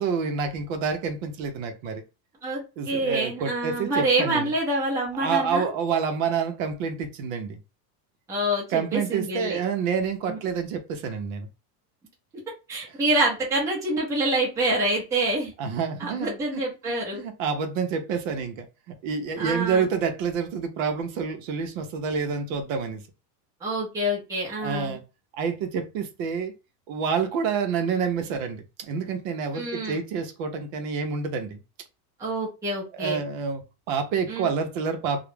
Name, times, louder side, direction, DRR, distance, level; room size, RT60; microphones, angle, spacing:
voice 1, 0.0-2.0 2.8-4.5 5.2-7.6 8.7-11.5 15.6-16.6 17.1-23.0 24.6-25.0 25.3-26.5 26.9-31.6 32.9-35.2, right 6 dB, 55° right, 0.6 m, -28 dB
voice 2, 2.4-5.7 8.3-9.6 10.3-10.4 12.7-15.5 16.0-17.2 19.4-19.8 23.6-25.0 29.5-30.0 32.2-33.2 34.3-34.5, right 1 dB, 5° right, 0.5 m, -26 dB
2.3 x 2.0 x 3.1 m
supercardioid pair, 165°, 49 cm